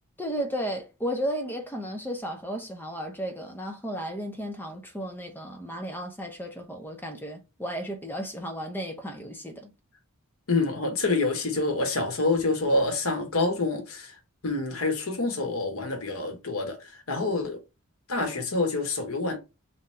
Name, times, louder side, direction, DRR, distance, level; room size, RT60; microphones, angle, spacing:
voice 1, 0.2-9.7, equal, 10° left, 0.9 m, -34 dB
voice 2, 10.5-14.2 14.4-17.6 18.1-19.4, left 3 dB, 75° left, 1.3 m, -27 dB
3.9 x 3.0 x 4.1 m
head